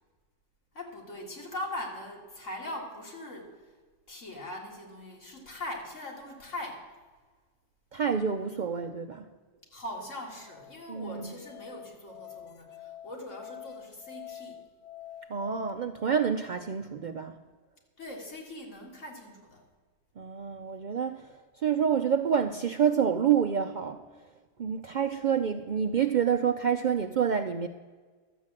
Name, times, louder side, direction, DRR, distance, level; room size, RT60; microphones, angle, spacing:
voice 1, 0.7-3.6 4.1-6.9 9.7-14.6 18.0-19.6, left 1 dB, 80° left, 0 dB, 2.5 m, -41 dB
voice 2, 7.9-9.2 10.9-11.4 15.3-17.4 20.2-21.3 21.6-24.0 24.6-27.7, right 7 dB, 60° right, 6 dB, 0.5 m, -28 dB
Musical instrument, 10.4-15.7, left 11 dB, 45° left, 0.6 m, -46 dB
12.0 x 7.6 x 7.4 m, 1.4 s
omnidirectional pair, 1.3 m